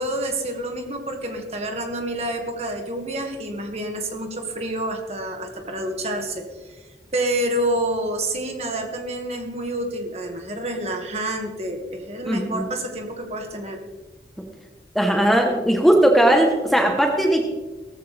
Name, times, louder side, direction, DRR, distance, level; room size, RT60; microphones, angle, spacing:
voice 1, 0.0-6.8 7.1-13.8, right 1 dB, 35° right, 3 dB, 1.9 m, -28 dB
voice 2, 12.3-12.6 14.9-17.4, right 1 dB, ahead, 2 dB, 1.1 m, -18 dB
17.5 x 14.5 x 3.4 m, 1.3 s
head